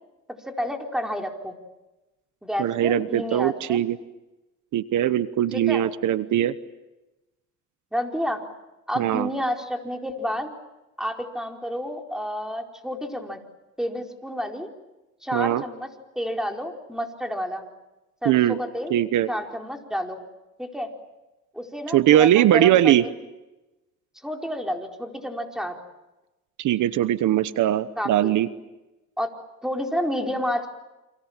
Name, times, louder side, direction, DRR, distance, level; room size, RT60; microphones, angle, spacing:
voice 1, 0.3-1.6 2.4-3.8 5.5-5.8 7.9-8.4 8.9-10.5 11.0-13.4 13.8-14.7 15.2-15.9 16.1-17.6 18.2-18.9 19.3-20.2 20.6-20.9 21.5-23.1 24.2-25.8 28.0-28.3 29.2-29.3 29.6-30.7, equal, ahead, 2 dB, 4.6 m, -30 dB
voice 2, 2.6-4.0 4.7-6.5 9.0-9.3 15.3-15.6 18.2-18.6 18.9-19.3 21.9-23.1 26.6-28.5, right 12 dB, 80° right, 14 dB, 1.1 m, -20 dB
29.0 x 27.0 x 7.4 m, 1.0 s
cardioid pair, 90°, 30 cm